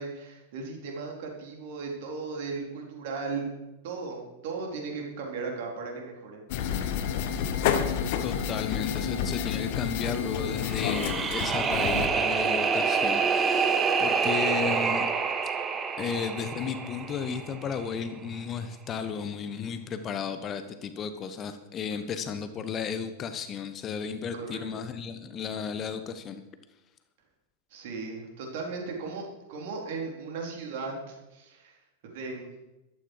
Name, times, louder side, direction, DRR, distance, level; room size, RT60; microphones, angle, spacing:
voice 1, 0.0-3.5 3.8-6.9 24.3-24.8 27.7-29.2 29.5-31.8 32.0-32.5, right 4 dB, 50° right, 1 dB, 4.1 m, -37 dB
sound 1, 6.5-12.1, left 8 dB, 50° left, 1.4 m, -29 dB
voice 2, 8.2-15.1 16.0-26.4, left 6 dB, 30° left, 10 dB, 1.1 m, -34 dB
sound 2, 10.7-17.7, right 5 dB, 20° right, 1.3 m, -27 dB
14.0 x 13.0 x 4.8 m, 1.0 s
figure-of-eight pair, 90°, 0 cm